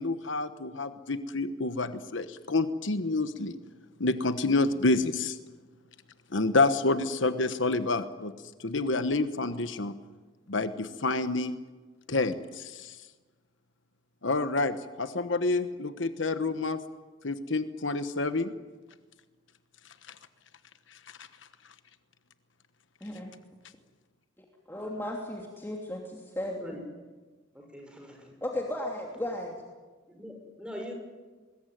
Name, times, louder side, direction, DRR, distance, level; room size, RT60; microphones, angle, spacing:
voice 1, 0.0-3.6 4.0-5.4 6.3-8.3 8.6-10.0 10.5-11.5 12.1-13.0 14.2-16.8 17.2-18.5 21.2-21.3, left 3 dB, 75° left, 10 dB, 1.2 m, -28 dB
voice 2, 23.0-23.3 24.7-26.8 28.4-29.6, left 1 dB, 10° left, -1 dB, 2.9 m, -35 dB
voice 3, 27.5-28.3 30.1-30.9, equal, 5° right, 2 dB, 6.0 m, -42 dB
24.5 x 21.0 x 9.3 m, 1.3 s
head